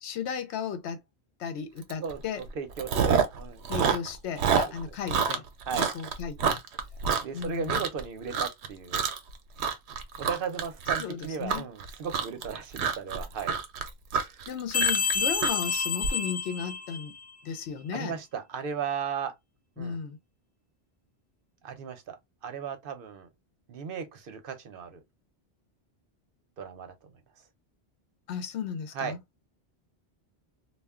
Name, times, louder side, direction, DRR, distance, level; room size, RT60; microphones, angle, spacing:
voice 1, 0.0-1.0 1.4-2.4 3.7-5.4 5.9-6.6 7.3-7.7 11.0-11.7 14.5-17.1 17.4-18.1 19.8-20.2 28.3-29.2, left 7 dB, 85° left, 0.9 m, -35 dB
Chewing mastication, 1.9-2.1 2.4-3.4 3.6-8.0 8.3-8.7 8.9-9.3 9.6-16.1, right 6 dB, 90° right, 0.9 m, -27 dB
voice 2, 2.0-3.7 5.7-5.9 7.2-9.1 10.2-13.5 14.3-14.5 17.9-19.3 19.8-20.0 21.6-22.2 22.4-23.3 23.7-25.0 26.6-26.9 28.9-29.1, right 6 dB, 60° right, 0.8 m, -36 dB
sound 1, 14.7-17.3, left 5 dB, 50° left, 1.0 m, -29 dB
2.3 x 2.1 x 3.5 m
omnidirectional pair, 1.1 m